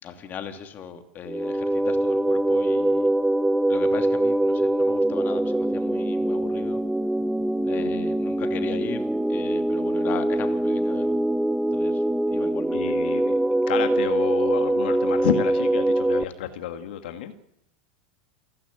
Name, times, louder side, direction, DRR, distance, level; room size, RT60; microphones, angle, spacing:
voice 1, 0.0-3.1 3.7-6.8 7.6-11.2 11.7-12.0 12.3-12.8, left 7 dB, 35° left, 6 dB, 2.9 m, -38 dB
sound 1, 1.3-16.2, right 1 dB, 5° right, 0.7 m, -23 dB
voice 2, 12.7-13.4 13.7-17.3, left 10 dB, 80° left, 7 dB, 1.8 m, -30 dB
29.0 x 12.0 x 8.7 m, 0.79 s
supercardioid pair, 115°, 5 cm